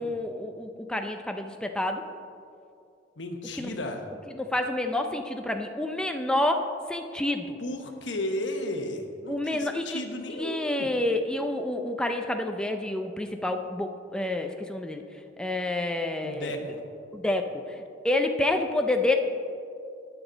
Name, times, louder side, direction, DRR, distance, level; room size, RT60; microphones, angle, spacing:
voice 1, 0.0-2.0 3.6-3.7 4.3-7.6 9.3-10.0 10.4-15.0 15.4-16.5 17.1-19.2, left 1 dB, 5° left, 5 dB, 0.5 m, -28 dB
voice 2, 3.2-4.0 7.6-10.9 16.2-16.8, left 1 dB, 90° left, 4 dB, 1.1 m, -34 dB
18.0 x 6.1 x 3.9 m, 2.5 s
head